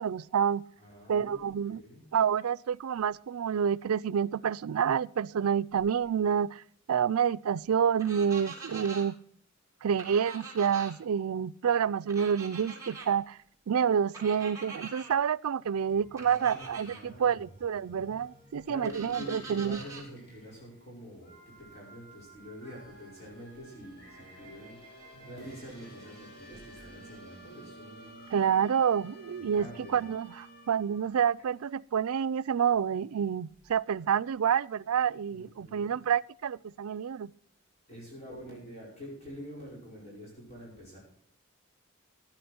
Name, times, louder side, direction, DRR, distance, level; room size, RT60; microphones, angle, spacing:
voice 1, 0.0-0.6 1.1-1.8 2.1-6.6 6.9-9.1 9.8-13.4 13.7-19.8 28.3-29.7 29.9-37.3, right 7 dB, 85° right, 0.4 m, -28 dB
voice 2, 0.8-1.6 1.8-2.1 16.1-17.5 18.6-28.5 29.4-30.0 35.3-35.9 37.9-41.0, equal, 30° left, 5.4 m, -47 dB
sound 1, 8.0-9.0 10.0-10.9 12.1-13.1 14.1-15.1 16.2-17.0 18.8-20.0, right 4 dB, 15° right, 2.9 m, -44 dB
sound 2, 15.7-31.2, right 1 dB, 50° left, 6.5 m, -53 dB
15.5 x 10.0 x 4.4 m
head